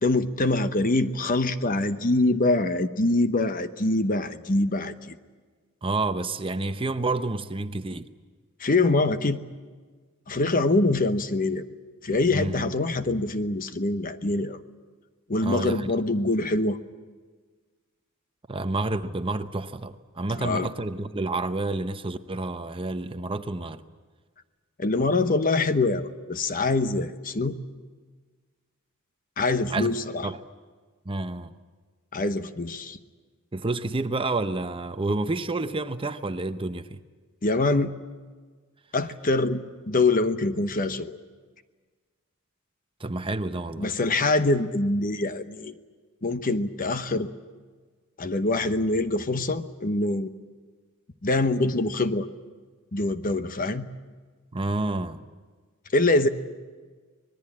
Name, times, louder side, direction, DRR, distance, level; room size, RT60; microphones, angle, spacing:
voice 1, 0.0-5.2 8.6-9.4 10.3-11.7 12.0-14.6 15.3-16.8 20.3-20.7 24.8-27.6 29.4-30.3 32.1-33.0 37.4-37.9 38.9-41.1 43.8-45.7 46.2-47.3 48.2-50.3 51.2-52.3 52.9-53.9 55.9-56.3, left 2 dB, 40° left, 11 dB, 1.0 m, -24 dB
voice 2, 5.8-8.1 12.3-12.7 15.4-15.9 18.5-23.8 29.7-29.9 30.2-30.4 31.1-31.5 33.5-37.0 43.0-43.9 54.5-55.2, right 2 dB, 25° right, 10 dB, 0.7 m, -29 dB
25.5 x 20.0 x 8.6 m, 1.5 s
head